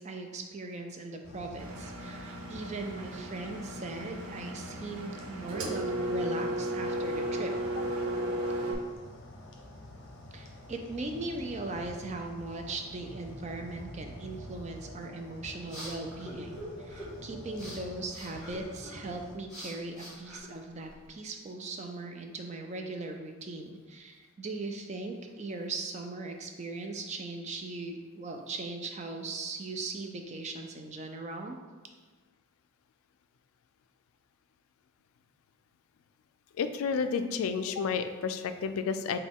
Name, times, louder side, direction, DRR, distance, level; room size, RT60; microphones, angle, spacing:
voice 1, 0.0-7.5 10.3-31.6, right 3 dB, 30° right, 3 dB, 0.4 m, -39 dB
sound 1, 1.2-19.4, left 1 dB, 55° left, 0.7 m, -48 dB
Engine, 1.6-8.7, right 1 dB, 80° right, 0.6 m, -35 dB
sound 2, 15.2-21.1, equal, ahead, 1.4 m, -46 dB
voice 2, 36.6-39.2, left 6 dB, 80° left, 9 dB, 0.3 m, -31 dB
6.1 x 2.2 x 3.5 m, 1.5 s
head